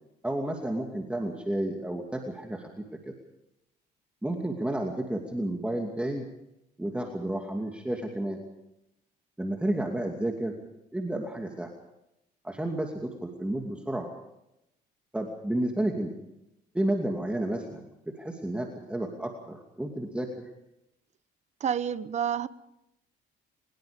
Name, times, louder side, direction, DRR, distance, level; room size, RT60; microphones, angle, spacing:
voice 1, 0.2-3.1 4.2-6.3 6.8-8.4 9.4-10.5 10.9-11.7 12.4-14.1 15.1-16.1 16.7-20.5, right 1 dB, 5° right, 2.6 m, -31 dB
voice 2, 21.6-22.5, right 8 dB, 45° right, 1.0 m, -29 dB
23.5 x 21.5 x 5.3 m
cardioid pair, 110°, 17 cm